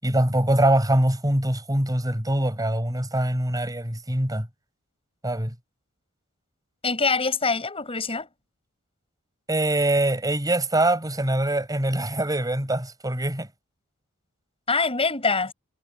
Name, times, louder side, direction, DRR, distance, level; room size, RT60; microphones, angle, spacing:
voice 1, 0.0-4.5 5.2-5.5 9.5-13.5, right 1 dB, 15° right, 6.6 m, -23 dB
voice 2, 6.8-8.3 14.7-15.5, left 4 dB, 25° left, 7.2 m, -24 dB
head